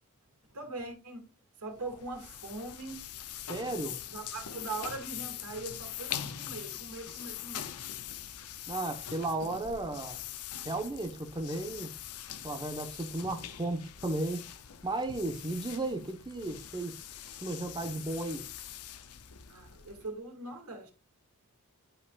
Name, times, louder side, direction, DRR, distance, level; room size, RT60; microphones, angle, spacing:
voice 1, 0.5-1.3 1.6-3.2 4.1-7.8 19.5-20.9, right 3 dB, 85° right, 2.3 m, -41 dB
sound 1, 1.7-20.2, left 10 dB, 80° left, 0.7 m, -43 dB
voice 2, 3.5-4.0 8.7-10.2 10.6-11.9 12.4-14.4 14.8-17.0 17.4-18.5, right 2 dB, 20° right, 1.1 m, -34 dB
11.5 x 5.2 x 2.4 m
head